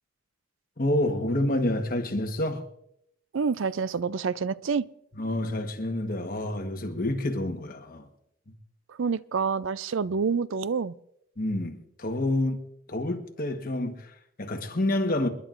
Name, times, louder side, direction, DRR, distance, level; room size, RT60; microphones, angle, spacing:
voice 1, 0.8-2.6 5.2-8.1 8.5-8.6 11.4-12.6 12.9-15.3, left 1 dB, 40° left, 1.3 m, -28 dB
voice 2, 3.3-4.8 9.0-10.9, right 5 dB, 60° right, 0.4 m, -27 dB
29.0 x 11.0 x 2.6 m
head